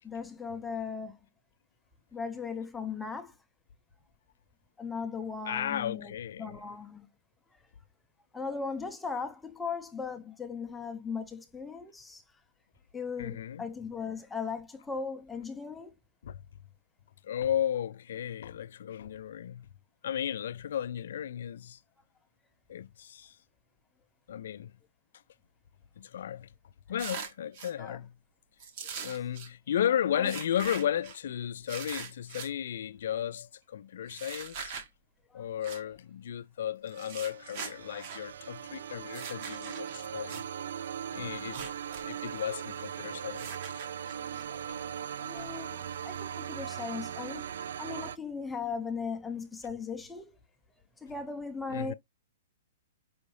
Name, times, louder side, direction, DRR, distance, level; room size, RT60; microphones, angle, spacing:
voice 1, 0.0-1.2 2.1-3.4 4.8-6.1 6.4-7.1 7.5-7.6 8.3-12.2 12.9-15.9 27.8-28.0 28.8-29.0 30.1-30.3 35.3-35.4 44.5-47.5 47.8-50.4 51.0-51.9, left 5 dB, 5° left, 0.6 m, -38 dB
voice 2, 5.5-6.6 13.2-13.6 16.2-16.4 17.2-19.7 20.0-21.8 22.7-23.4 24.3-24.7 26.0-26.5 26.9-28.1 29.0-34.7 35.3-40.4 41.1-41.7 42.0-43.5 45.3-45.4 51.7-51.9, left 10 dB, 70° left, 0.3 m, -34 dB
sound 1, 27.0-27.7 28.6-29.5 30.2-31.2 31.7-32.5 34.1-34.9 35.6-35.8 36.9-38.2 39.1-40.4 41.4-42.0 42.3-42.4 43.3-44.4, right 6 dB, 45° right, 1.2 m, -42 dB
sound 2, 36.9-48.2, right 9 dB, 70° right, 0.3 m, -39 dB
5.4 x 2.5 x 3.2 m
hypercardioid pair, 145°, 0 cm